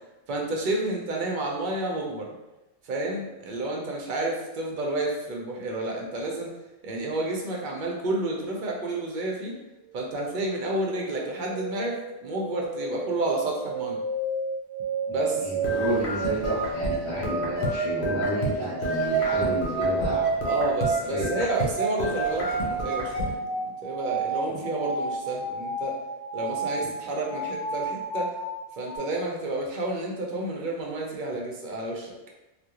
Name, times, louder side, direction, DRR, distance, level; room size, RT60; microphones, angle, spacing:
voice 1, 0.3-2.3 2.9-6.5 6.8-9.6 9.9-14.0 15.1-15.4 20.4-25.9 26.3-28.3 28.8-32.1, right 2 dB, 55° right, -1 dB, 0.6 m, -30 dB
sound 1, 9.8-29.0, right 3 dB, 85° right, 0.9 m, -30 dB
voice 2, 15.4-20.2 21.1-21.3 24.5-24.6 26.8-26.9, right 1 dB, 30° left, -13 dB, 0.7 m, -31 dB
sound 2, 15.6-18.6 18.8-21.7 22.0-23.4, equal, 80° left, 0.9 m, -32 dB
2.3 x 2.1 x 2.8 m, 0.99 s
omnidirectional pair, 1.1 m